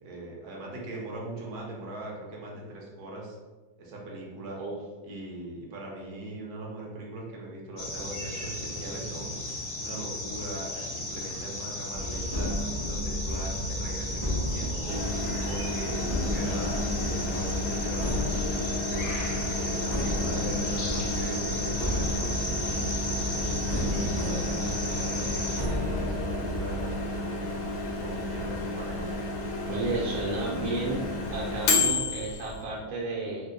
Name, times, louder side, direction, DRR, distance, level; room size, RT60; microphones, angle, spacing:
voice 1, 0.0-3.4 3.8-4.6 5.0-9.4 9.8-12.5 12.9-15.0 15.4-19.1 19.6-22.7 23.3-27.5 28.0-29.2, right 1 dB, 60° right, -3 dB, 1.2 m, -40 dB
sound 1, 7.8-25.6, left 2 dB, 60° left, 0.8 m, -35 dB
sound 2, 11.9-26.9, equal, 35° right, 0.3 m, -33 dB
Microwave oven, 14.9-32.6, left 2 dB, 75° left, 1.1 m, -32 dB
voice 2, 29.7-31.0 31.3-33.5, right 2 dB, 90° right, -4 dB, 1.3 m, -32 dB
3.3 x 2.0 x 3.6 m, 1.3 s
omnidirectional pair, 2.0 m